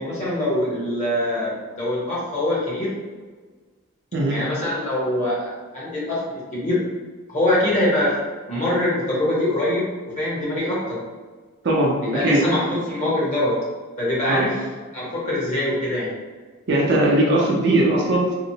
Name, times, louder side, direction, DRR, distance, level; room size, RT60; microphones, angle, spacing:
voice 1, 0.0-2.9 4.3-6.8 7.3-8.1 8.5-11.0 12.1-13.6 14.0-14.6 14.9-16.1, left 1 dB, 35° left, -7 dB, 0.8 m, -23 dB
voice 2, 11.6-12.4 14.3-14.5 16.7-18.3, right 1 dB, 50° right, -2 dB, 0.5 m, -19 dB
2.8 x 2.0 x 2.7 m, 1.4 s
head